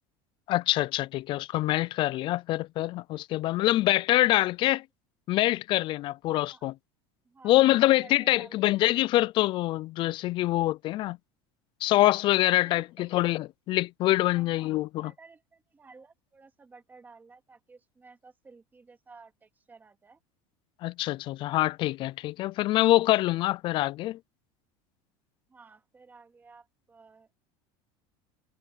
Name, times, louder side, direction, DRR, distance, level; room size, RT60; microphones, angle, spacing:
voice 1, 0.5-4.8 5.3-6.7 7.4-11.2 11.8-15.1 20.8-24.2, left 16 dB, 40° left, 0.4 m, -25 dB
voice 2, 7.2-7.6 8.0-8.6 12.6-13.2 14.2-20.2 25.5-27.3, right 4 dB, 15° right, 2.3 m, -54 dB
supercardioid pair, 145°, 13 cm